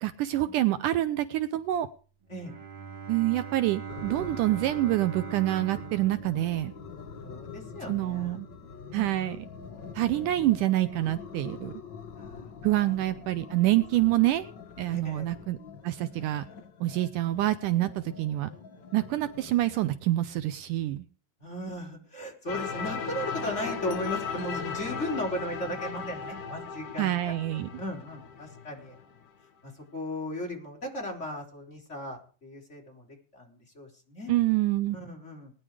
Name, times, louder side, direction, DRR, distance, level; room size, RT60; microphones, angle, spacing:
voice 1, 0.0-1.9 3.1-6.7 7.9-8.5 8.9-9.5 9.9-11.7 12.6-14.4 14.8-15.6 15.8-16.4 16.8-18.5 18.9-21.0 27.0-27.7 34.3-35.0, right 15 dB, 75° right, 12 dB, 2.3 m, -26 dB
Bowed string instrument, 2.2-7.2, right 7 dB, 50° right, 2.7 m, -41 dB
sound 1, 3.9-19.9, left 6 dB, 45° left, 1.5 m, -45 dB
voice 2, 7.2-8.4 8.9-9.2 12.2-13.0 13.3-13.6 14.9-15.3 17.8-18.5 21.4-28.9 29.6-33.1 33.3-34.3 34.9-35.5, left 1 dB, 20° left, 1 dB, 5.0 m, -37 dB
sound 2, 22.5-29.2, left 6 dB, 65° left, 3.3 m, -36 dB
20.5 x 10.5 x 5.0 m, 0.38 s
omnidirectional pair, 3.9 m